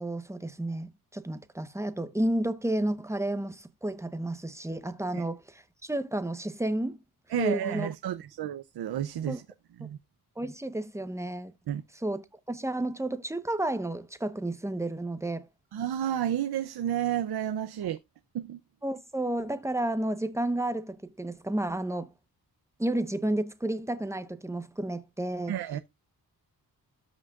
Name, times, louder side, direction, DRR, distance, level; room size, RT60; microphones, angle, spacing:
voice 1, 0.0-7.0 7.4-7.9 9.3-9.4 10.4-11.5 12.0-15.5 18.8-22.1 22.8-25.5, right 1 dB, 5° right, 1.0 m, -31 dB
voice 2, 7.3-9.4 9.8-10.0 11.7-11.8 15.7-18.0 18.3-18.6 25.5-25.8, right 10 dB, 85° right, 0.7 m, -31 dB
13.0 x 6.1 x 2.4 m
wide cardioid pair, 115°, 37 cm